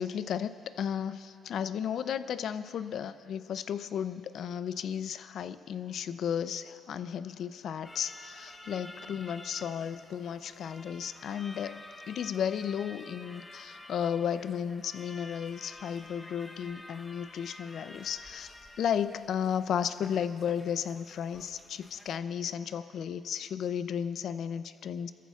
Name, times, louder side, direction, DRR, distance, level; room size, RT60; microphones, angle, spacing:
voice 1, 0.0-18.5 18.8-25.1, left 8 dB, 70° left, 13 dB, 0.5 m, -34 dB
sound 1, 7.8-22.2, left 1 dB, 15° left, 0.9 m, -50 dB
26.0 x 14.0 x 2.4 m, 2.4 s
cardioid pair, 90°, 0 cm